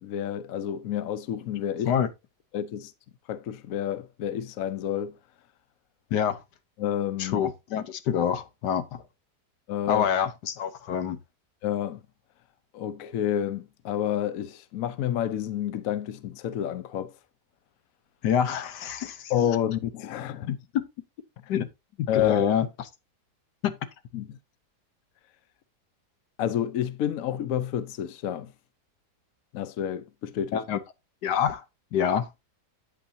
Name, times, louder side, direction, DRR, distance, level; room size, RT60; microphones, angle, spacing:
voice 1, 0.0-1.9 2.5-2.9 3.3-5.1 6.8-7.5 9.7-10.1 11.6-12.0 12.7-17.1 19.3-20.6 22.1-22.5 24.1-24.4 26.4-28.5 29.5-30.6, left 10 dB, 65° left, 1.1 m, -29 dB
voice 2, 7.2-9.0 9.9-11.2 18.2-19.3 20.5-20.9 21.5-21.7 22.0-22.9 23.6-23.7 30.5-30.8 31.2-31.6 31.9-32.3, left 8 dB, 85° left, 1.6 m, -26 dB
9.0 x 8.4 x 2.6 m
omnidirectional pair, 1.8 m